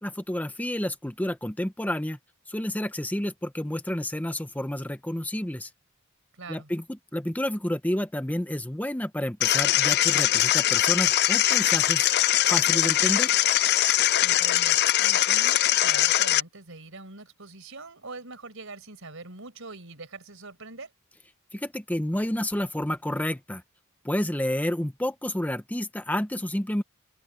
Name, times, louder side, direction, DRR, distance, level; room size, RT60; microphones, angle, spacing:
voice 1, 0.0-2.2 2.5-5.7 6.5-12.1 12.5-13.3 21.5-23.6 24.0-26.8, left 1 dB, 10° left, 0.8 m, -30 dB
voice 2, 6.3-6.7 14.2-20.9, right 3 dB, 70° right, 5.5 m, -43 dB
sound 1, 9.4-16.4, left 13 dB, 50° left, 0.5 m, -22 dB
open air
head